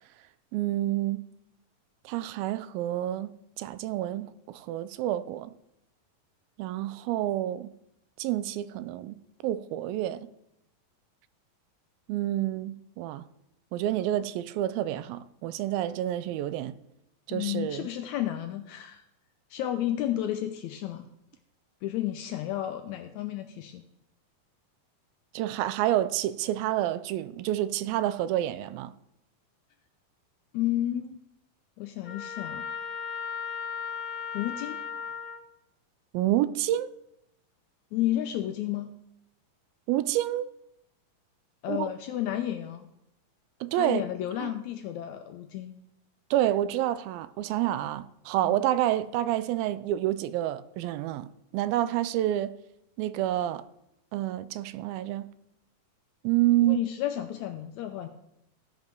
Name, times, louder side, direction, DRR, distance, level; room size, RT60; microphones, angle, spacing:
voice 1, 0.5-1.3 2.1-5.5 6.6-7.7 8.2-10.3 12.1-13.2 13.7-16.7 17.3-17.9 25.3-28.9 36.1-36.9 39.9-40.5 41.7-41.9 43.6-44.0 44.4-44.5 46.3-51.3 51.5-52.5 53.0-53.6 54.1-55.3 56.2-56.8, right 13 dB, 90° right, 2.4 m, -28 dB
voice 2, 17.3-19.0 19.5-21.1 21.8-23.8 30.5-31.2 31.8-32.7 34.3-34.8 37.9-38.9 41.6-42.9 43.7-45.8 48.4-48.6 56.6-58.1, left 12 dB, 90° left, 1.6 m, -32 dB
Trumpet, 32.0-35.4, left 6 dB, 55° left, 1.1 m, -36 dB
16.0 x 5.3 x 6.1 m
omnidirectional pair, 4.1 m